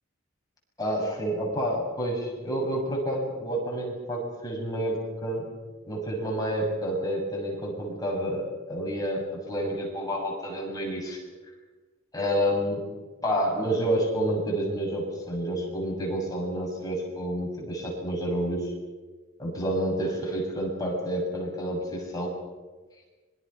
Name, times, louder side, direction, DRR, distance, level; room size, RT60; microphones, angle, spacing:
voice 1, 0.8-5.4 5.9-11.2 12.1-12.8 13.2-18.7 19.4-22.3, equal, 15° left, -2 dB, 6.8 m, -29 dB
25.5 x 23.5 x 5.8 m, 1.3 s
head